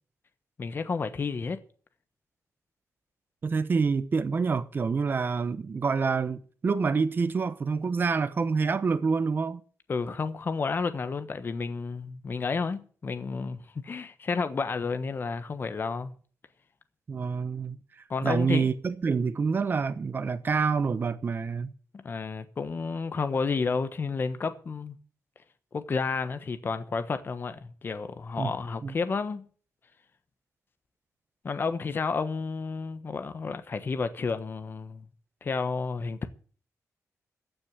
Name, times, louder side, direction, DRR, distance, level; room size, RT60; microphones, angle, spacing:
voice 1, 0.6-1.6 9.9-16.1 18.1-18.7 21.9-25.0 25.7-29.5 31.4-35.1 35.4-36.3, left 4 dB, 40° left, 1.2 m, -31 dB
voice 2, 3.4-9.6 17.1-17.8 18.2-21.7 28.4-28.5 28.8-28.9, right 5 dB, 40° right, 0.9 m, -27 dB
15.0 x 6.3 x 9.5 m
wide cardioid pair, 160°, 6 cm